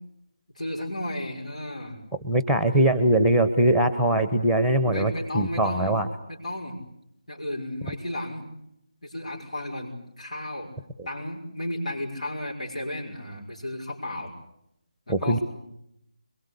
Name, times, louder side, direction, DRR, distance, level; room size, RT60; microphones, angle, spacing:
voice 1, 0.5-2.0 4.6-5.9 6.3-6.8 7.3-8.5 9.0-10.7 11.0-14.3 15.1-15.4, left 1 dB, 75° left, -1 dB, 6.1 m, -34 dB
voice 2, 2.2-6.1 15.1-15.4, right 1 dB, ahead, 10 dB, 1.0 m, -21 dB
25.5 x 23.0 x 8.4 m, 0.78 s
figure-of-eight pair, 170°, 4 cm